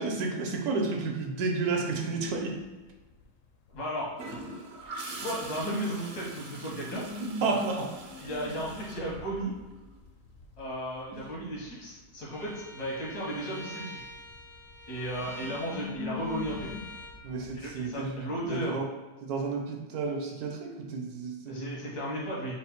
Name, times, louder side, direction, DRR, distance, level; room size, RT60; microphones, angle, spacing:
voice 1, 0.0-2.6 7.4-7.9 17.2-18.9 19.2-21.8, right 4 dB, 75° right, 1 dB, 1.2 m, -31 dB
sound 1, 2.3-2.6 3.0-3.8 4.8-4.9 5.3-5.4 5.6-5.7 6.3-13.5 13.8-18.7, left 3 dB, 70° left, 0.9 m, -43 dB
voice 2, 3.7-4.2 5.1-7.1 8.2-9.5 10.6-14.0 14.9-16.7 17.5-18.8 21.5-22.5, right 1 dB, 85° left, -5 dB, 1.8 m, -35 dB
Gurgling / Toilet flush, 4.2-9.9 11.9-12.2, right 2 dB, 55° right, 0.7 m, -43 dB
Bowed string instrument, 12.3-17.2, left 1 dB, 15° left, 0.4 m, -46 dB
4.0 x 2.1 x 4.3 m, 1.2 s
omnidirectional pair, 1.6 m